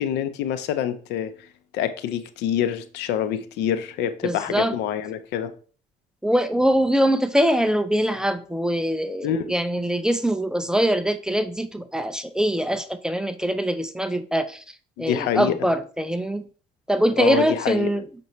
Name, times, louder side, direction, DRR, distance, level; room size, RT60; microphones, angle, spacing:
voice 1, 0.0-1.3 1.7-5.5 9.2-9.4 15.0-15.5 17.2-17.9, left 9 dB, 85° left, 0.7 m, -26 dB
voice 2, 4.2-4.8 6.2-14.6 15.0-16.5 16.9-18.1, equal, 5° right, 0.5 m, -23 dB
6.8 x 5.4 x 3.1 m
cardioid pair, 110°, 17 cm